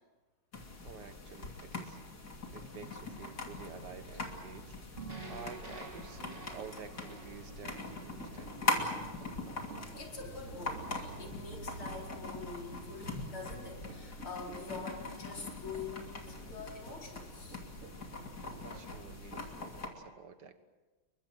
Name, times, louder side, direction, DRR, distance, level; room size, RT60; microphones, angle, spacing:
sound 1, 0.5-19.9, left 3 dB, 50° left, 3.3 m, -42 dB
voice 1, 0.8-2.0 2.5-4.8 5.3-8.9 18.4-20.6, right 5 dB, 55° right, 9 dB, 2.0 m, -50 dB
sound 2, 2.8-19.5, right 4 dB, 85° right, 3.5 m, -51 dB
sound 3, 5.0-9.3, right 3 dB, 25° right, 3.3 m, -49 dB
voice 2, 10.0-17.6, left 4 dB, 80° left, 0 dB, 5.4 m, -45 dB
28.5 x 23.5 x 6.3 m, 1.3 s
omnidirectional pair, 2.3 m